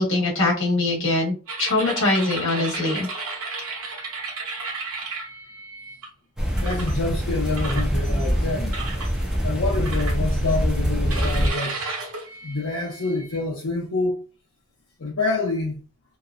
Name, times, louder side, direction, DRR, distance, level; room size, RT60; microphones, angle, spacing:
voice 1, 0.0-3.1, left 2 dB, 55° left, 1.3 m, -22 dB
sound 1, 1.5-6.1 6.6-7.0 7.6-8.3 8.7-9.1 9.8-10.6 11.1-13.4, right 3 dB, 80° right, 1.1 m, -33 dB
sound 2, 6.4-11.5, equal, 5° right, 0.6 m, -24 dB
voice 2, 6.6-8.8 9.4-11.8 12.4-14.2 15.0-15.8, left 3 dB, 75° left, 0.7 m, -27 dB
2.8 x 2.1 x 2.4 m
head